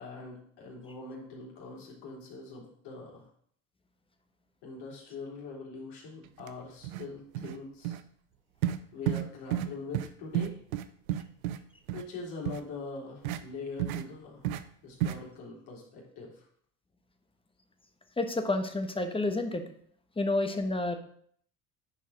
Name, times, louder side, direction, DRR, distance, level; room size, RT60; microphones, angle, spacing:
voice 1, 0.0-3.3 4.6-8.0 8.9-10.6 11.9-14.5 14.8-16.5, left 4 dB, 65° left, -3 dB, 3.6 m, -43 dB
sound 1, 6.4-6.5 6.8-7.1 7.3-7.6 7.8-8.0 8.6-8.8 9.1-9.2 9.5-9.7 9.9-10.1 10.3-11.6 11.9-12.0 12.4-12.6 13.2-13.4 13.8-14.0 14.4-14.6 15.0-15.2, right 12 dB, 85° right, 0.7 m, -31 dB
voice 2, 18.2-19.6 20.2-21.0, left 2 dB, 15° left, 7 dB, 1.2 m, -29 dB
10.0 x 4.7 x 4.2 m, 0.62 s
hypercardioid pair, 75°, 42 cm